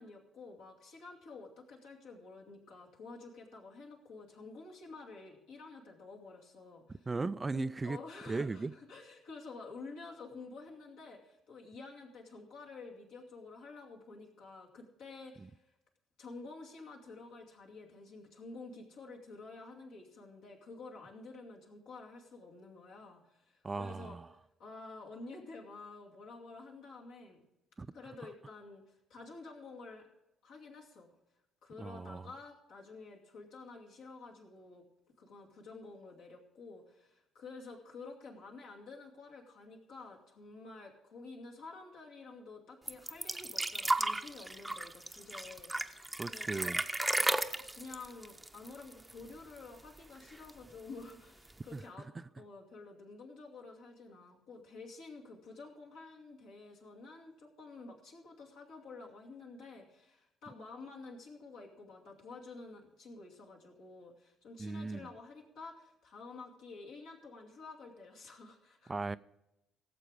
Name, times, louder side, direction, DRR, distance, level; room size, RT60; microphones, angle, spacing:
voice 1, 0.0-7.1 7.5-15.7 16.2-24.1 24.6-27.4 27.9-30.1 30.4-31.1 31.6-34.8 35.2-46.7 47.1-47.4 47.7-52.1 52.4-68.9, left 3 dB, 70° left, 2.5 m, -50 dB
voice 2, 7.1-8.0 8.3-8.7 15.4-15.5 23.6-24.3 27.8-27.9 31.8-32.3 46.2-46.8 51.7-51.8 52.2-52.3 64.6-65.1 68.9-69.2, right 3 dB, 25° right, 0.4 m, -37 dB
sound 1, 42.9-49.3 49.6-49.7 50.0-50.7 51.5-51.6, right 1 dB, 10° right, 0.8 m, -34 dB
17.0 x 7.7 x 5.0 m
hypercardioid pair, 50°, 0 cm